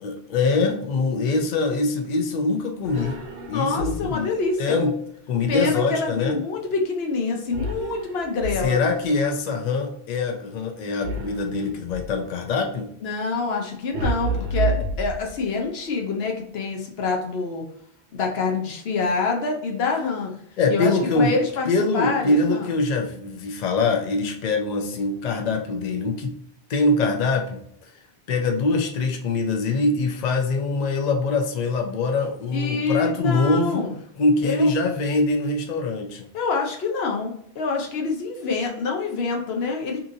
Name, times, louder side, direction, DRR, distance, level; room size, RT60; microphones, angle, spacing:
voice 1, 0.0-3.2 3.5-4.3 4.6-5.0 5.3-6.4 8.6-12.9 20.6-21.4 21.7-26.4 26.7-27.6 28.3-33.9 34.2-36.3, left 3 dB, 55° left, 3 dB, 0.5 m, -23 dB
sound 1, 2.8-4.3 7.5-9.1 11.0-12.2 13.9-15.6, right 2 dB, 70° right, 0.8 m, -30 dB
voice 2, 3.5-4.8 5.5-8.9 13.0-17.6 18.1-20.3 20.7-21.7 21.9-22.7 32.5-33.9 34.4-34.7 36.3-40.0, left 4 dB, 70° left, 1 dB, 0.9 m, -26 dB
2.8 x 2.6 x 2.5 m, 0.67 s
omnidirectional pair, 1.1 m